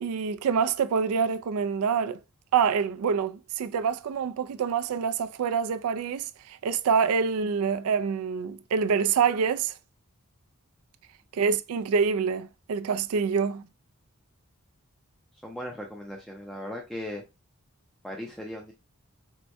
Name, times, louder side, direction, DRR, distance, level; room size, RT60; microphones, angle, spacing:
voice 1, 0.0-2.2 2.5-9.7 11.3-13.6, right 6 dB, 90° right, 0.4 m, -26 dB
voice 2, 15.4-17.2 18.0-18.7, left 1 dB, ahead, 0.4 m, -38 dB
4.5 x 2.1 x 2.6 m
head